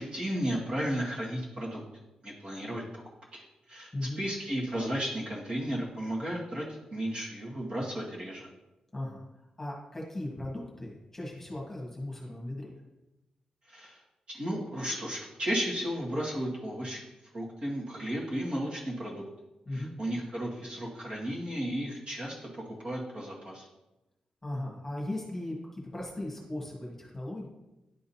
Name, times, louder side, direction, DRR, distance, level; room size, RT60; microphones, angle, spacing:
voice 1, 0.0-1.8 2.2-2.8 3.3-6.7 6.9-8.5 13.7-14.0 14.3-17.0 17.3-19.2 19.7-22.5 22.8-23.7, equal, 45° right, -5 dB, 1.9 m, -34 dB
voice 2, 8.9-9.2 9.6-12.7 19.6-19.9 24.4-27.5, left 1 dB, 15° left, -3 dB, 1.4 m, -37 dB
10.5 x 3.7 x 2.8 m, 0.97 s
wide cardioid pair, 125°, 2 cm